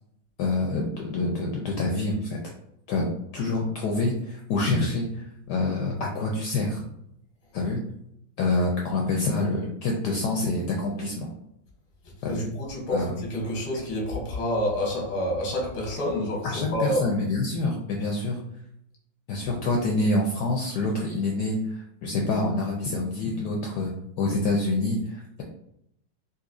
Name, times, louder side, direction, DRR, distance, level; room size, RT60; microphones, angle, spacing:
voice 1, 0.4-2.5 2.9-6.9 7.5-7.8 8.4-11.3 12.2-12.5 12.9-13.1 16.4-18.4 19.3-23.9 24.2-25.4, left 2 dB, 75° left, -1 dB, 1.0 m, -27 dB
voice 2, 12.2-17.0, equal, 30° left, -3 dB, 0.6 m, -28 dB
4.0 x 2.6 x 2.5 m, 0.77 s
omnidirectional pair, 2.1 m